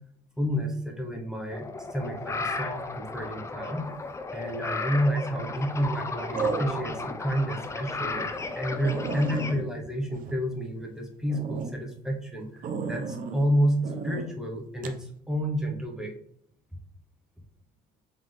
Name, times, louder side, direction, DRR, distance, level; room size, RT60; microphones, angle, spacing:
voice 1, 0.4-3.9 4.3-8.3 8.6-13.8 14.0-16.1, equal, 5° right, 0 dB, 0.9 m, -30 dB
sound 1, 1.5-9.5, left 3 dB, 15° left, 0.4 m, -35 dB
sound 2, 4.7-5.2 6.3-7.1 7.6-7.7 8.2-8.3 8.5-8.6 8.8-10.9 11.3-11.7 12.6-13.4 13.8-14.3 14.8-15.0, right 5 dB, 55° right, 0.6 m, -34 dB
3.8 x 3.7 x 3.3 m, 0.67 s
cardioid pair, 110°, 17 cm